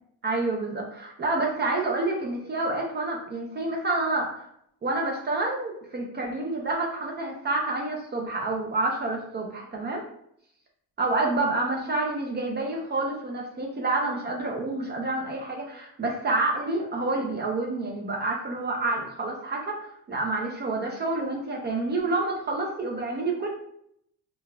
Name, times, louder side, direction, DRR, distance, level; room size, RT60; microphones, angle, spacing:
voice 1, 0.2-4.4 4.8-10.0 11.0-23.5, right 2 dB, 30° right, -1 dB, 0.5 m, -28 dB
5.1 x 2.4 x 2.2 m, 0.71 s
cardioid pair, 165°, 35 cm